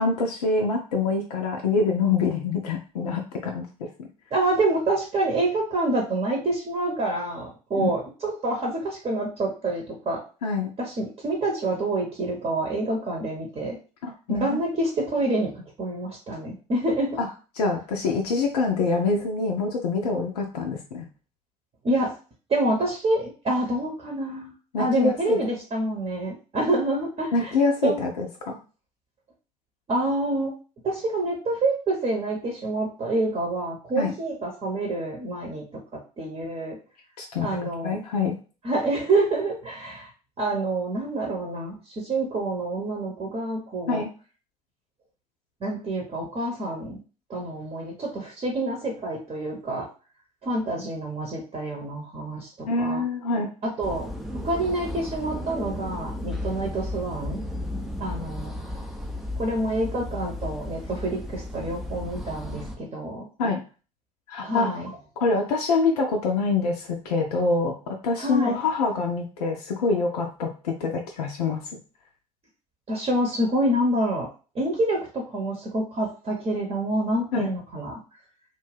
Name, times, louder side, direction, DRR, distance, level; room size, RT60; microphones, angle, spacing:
voice 1, 0.0-4.1 7.8-7.9 10.4-10.7 14.0-14.6 17.2-17.3 17.6-21.1 24.7-25.4 27.3-28.6 34.0-34.1 37.2-37.5 37.8-38.4 43.9-44.1 52.7-53.5 63.4-63.6 64.3-64.8 65.2-71.7 77.3-77.5, left 4 dB, 70° left, 1 dB, 0.5 m, -25 dB
voice 2, 4.3-10.2 10.8-13.8 14.3-17.2 21.8-22.1 22.5-27.5 27.8-28.0 29.9-30.5 30.8-35.6 36.2-36.8 37.4-38.0 38.6-40.1 40.4-44.0 45.6-47.0 47.3-49.9 50.4-53.0 53.6-54.1 54.4-57.4 58.0-58.5 59.4-63.3 64.4-64.9 68.2-68.6 72.9-74.3 74.5-78.0, right 2 dB, 30° right, 0 dB, 0.8 m, -27 dB
sound 1, 53.8-62.8, left 1 dB, ahead, 0.5 m, -34 dB
2.5 x 2.2 x 3.3 m, 0.35 s
figure-of-eight pair, 60°, 20 cm